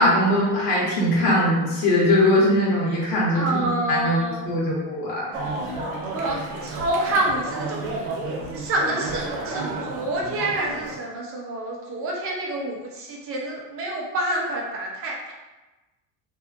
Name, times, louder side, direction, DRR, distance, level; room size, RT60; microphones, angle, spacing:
voice 1, 0.0-5.4, left 1 dB, 70° left, -6 dB, 1.2 m, -21 dB
voice 2, 3.3-4.5 6.1-8.2 8.5-15.3, right 1 dB, 40° right, -2 dB, 0.6 m, -28 dB
sound 1, 5.3-11.0, right 2 dB, 85° right, 0.8 m, -31 dB
2.6 x 2.6 x 2.4 m, 1.1 s
cardioid pair, 150°, 36 cm